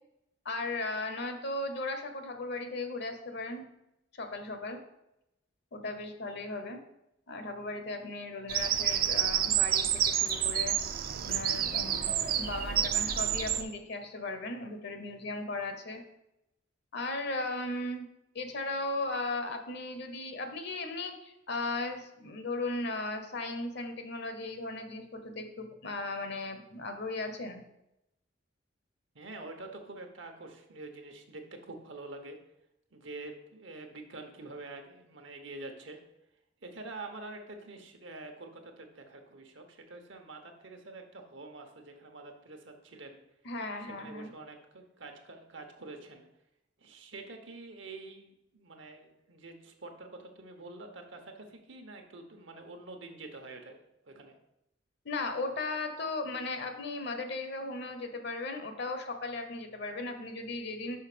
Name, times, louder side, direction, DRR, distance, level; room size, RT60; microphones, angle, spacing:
voice 1, 0.4-3.6 4.1-4.8 5.7-6.8 7.3-10.8 11.2-12.1 12.4-16.0 16.9-18.0 18.3-27.6 43.4-44.3 55.0-61.0, left 2 dB, 60° left, 7 dB, 0.9 m, -36 dB
Bird vocalization bird call bird song, 8.5-13.6, right 10 dB, 50° right, 0.5 m, -29 dB
voice 2, 29.1-32.4 32.9-36.0 36.6-43.2 44.0-46.3 46.8-53.8 54.0-54.4, right 2 dB, 75° right, 4 dB, 1.0 m, -46 dB
5.6 x 5.3 x 5.0 m, 0.85 s
head